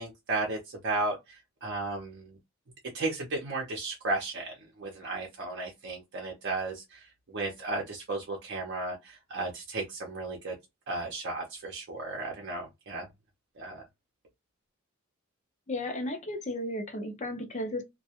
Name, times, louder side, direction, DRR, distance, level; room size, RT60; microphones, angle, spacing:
voice 1, 0.0-2.4 2.9-10.5 10.9-13.1 13.6-13.8, right 2 dB, 55° right, 0.6 m, -34 dB
voice 2, 15.7-17.8, left 1 dB, 35° left, 0.6 m, -34 dB
2.3 x 2.2 x 2.8 m
head